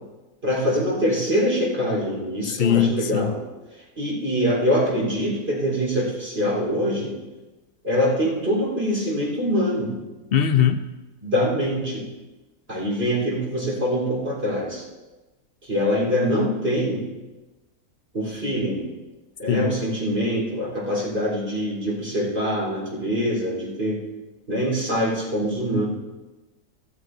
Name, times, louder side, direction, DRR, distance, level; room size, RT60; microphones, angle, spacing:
voice 1, 0.4-3.4 4.0-7.2 7.8-9.9 11.2-12.1 12.7-14.8 15.6-17.0 18.1-18.9 19.4-24.0 24.5-25.9, equal, 40° right, -4 dB, 4.1 m, -24 dB
voice 2, 2.5-3.3 10.3-10.8 19.5-19.7, left 9 dB, 65° left, 9 dB, 0.6 m, -20 dB
14.0 x 13.5 x 2.6 m, 1.1 s
omnidirectional pair, 1.6 m